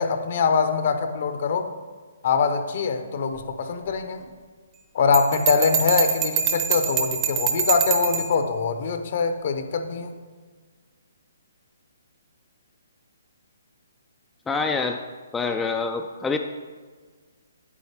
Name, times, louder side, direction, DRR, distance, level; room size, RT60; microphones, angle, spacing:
voice 1, 0.0-1.7 2.2-4.2 4.9-10.2, left 5 dB, 50° left, 8 dB, 0.8 m, -23 dB
Bell, 5.1-8.3, right 8 dB, 25° right, 0.7 m, -25 dB
voice 2, 14.5-15.0 15.3-16.4, left 4 dB, 10° left, 4 dB, 0.3 m, -26 dB
8.4 x 8.2 x 3.6 m, 1.5 s
hypercardioid pair, 155°, 0 cm